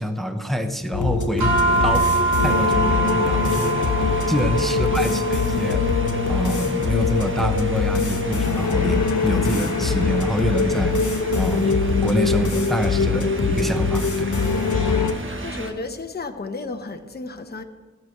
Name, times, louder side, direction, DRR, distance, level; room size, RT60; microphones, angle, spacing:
voice 1, 0.0-2.1 2.4-3.9 4.3-5.9 6.3-14.3, equal, ahead, 0.9 m, -26 dB
sound 1, 0.9-15.1, left 4 dB, 75° left, 1.0 m, -22 dB
sound 2, 1.4-15.7, right 2 dB, 40° right, 1.4 m, -34 dB
sound 3, 1.4-11.9, right 2 dB, 75° right, 3.0 m, -27 dB
voice 2, 4.7-5.2 15.4-17.6, left 3 dB, 30° left, 0.9 m, -33 dB
15.5 x 6.1 x 6.5 m
wide cardioid pair, 80°, 30 cm